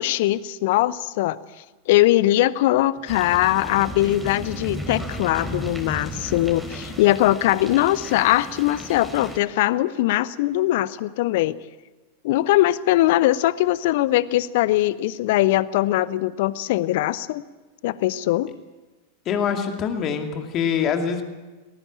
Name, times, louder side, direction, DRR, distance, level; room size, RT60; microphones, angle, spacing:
voice 1, 0.0-1.4 1.9-11.6 12.2-17.4 17.8-18.5, left 15 dB, 50° left, 19 dB, 0.8 m, -21 dB
sound 1, 3.1-9.4, equal, ahead, 3.9 m, -35 dB
voice 2, 19.3-21.2, left 7 dB, 35° left, 5 dB, 2.5 m, -24 dB
19.5 x 19.0 x 8.7 m, 1.2 s
figure-of-eight pair, 90°, 0 cm